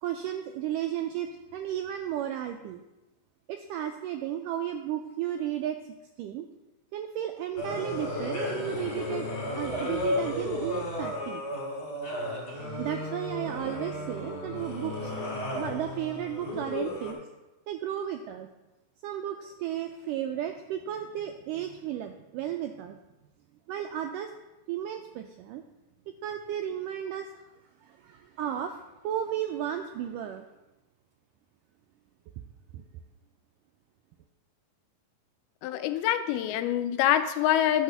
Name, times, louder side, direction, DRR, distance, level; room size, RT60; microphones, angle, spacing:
voice 1, 0.0-2.8 3.5-5.8 6.2-6.5 6.9-9.3 9.6-11.4 12.8-15.1 15.5-17.2 17.7-18.5 19.0-23.0 23.7-24.3 24.7-25.6 26.2-27.4 27.8-30.5 32.7-32.8, right 10 dB, 90° right, 5 dB, 1.9 m, -34 dB
sound 1, 7.6-17.1, left 1 dB, 30° left, 2.7 m, -33 dB
voice 2, 35.6-37.8, left 11 dB, 85° left, 10 dB, 2.5 m, -25 dB
11.0 x 4.8 x 6.7 m, 1.0 s
omnidirectional pair, 4.3 m